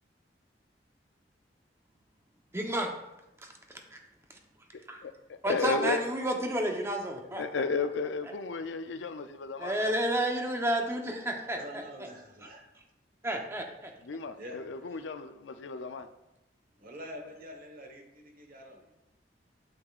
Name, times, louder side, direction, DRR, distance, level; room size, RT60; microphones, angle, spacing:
voice 1, 2.5-2.9 3.4-3.5 3.9-4.0 4.9-5.0 5.4-7.4 9.6-11.8 13.2-13.9, right 1 dB, 15° right, 0.8 m, -31 dB
voice 2, 5.0-6.0 7.4-9.9 14.0-16.1, left 4 dB, 80° left, 0.5 m, -34 dB
voice 3, 11.5-12.6 14.4-14.6 16.8-19.0, equal, 50° right, 1.2 m, -46 dB
8.6 x 7.7 x 2.4 m
head